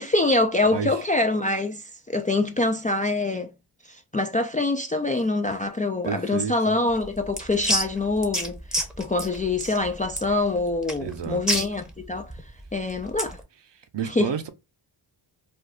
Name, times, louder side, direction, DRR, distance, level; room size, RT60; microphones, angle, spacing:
voice 1, 0.0-3.5 3.9-12.3 12.7-13.4 14.0-14.3, left 2 dB, 20° left, 0.3 m, -25 dB
voice 2, 0.6-1.0 6.0-6.7 11.0-11.4 13.7-14.5, right 7 dB, 60° right, 0.7 m, -31 dB
sound 1, 6.9-13.4, equal, ahead, 0.7 m, -30 dB
2.4 x 2.3 x 3.5 m
cardioid pair, 55°, 50 cm